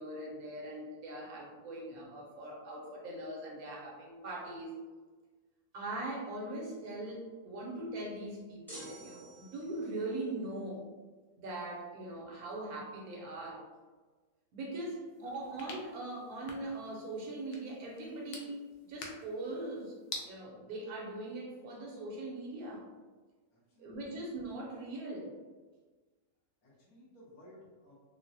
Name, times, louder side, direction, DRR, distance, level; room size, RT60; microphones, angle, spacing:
voice 1, 0.0-4.7 5.7-10.8 11.4-13.7 14.5-18.6 18.9-19.9 20.2-22.9 23.8-25.3, right 2 dB, 85° right, -2 dB, 1.3 m, -41 dB
sound 1, 8.7-10.0, right 2 dB, ahead, 0.5 m, -49 dB
sound 2, 15.1-20.3, left 3 dB, 65° left, 0.8 m, -49 dB
voice 2, 23.5-24.0 26.6-27.9, left 1 dB, 85° left, -6 dB, 1.5 m, -57 dB
3.8 x 2.0 x 2.7 m, 1.3 s
omnidirectional pair, 1.5 m